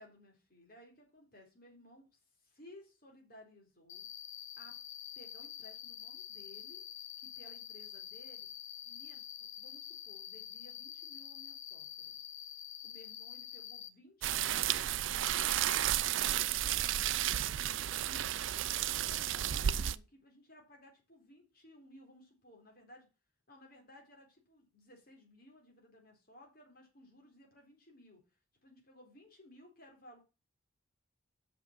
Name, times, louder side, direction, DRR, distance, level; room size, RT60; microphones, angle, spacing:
voice 1, 0.0-4.1 4.6-4.8 5.2-6.8 7.2-8.5 8.8-12.2 12.8-15.1 16.1-17.4 18.0-18.3 18.6-23.1 23.5-28.2 28.6-30.2, left 1 dB, 45° left, 0 dB, 3.8 m, -58 dB
Cricket, 3.9-13.9, left 11 dB, 65° left, 0.9 m, -47 dB
sound 1, 14.2-20.0, right 11 dB, 65° right, 0.4 m, -32 dB
6.6 x 5.8 x 7.2 m, 0.30 s
head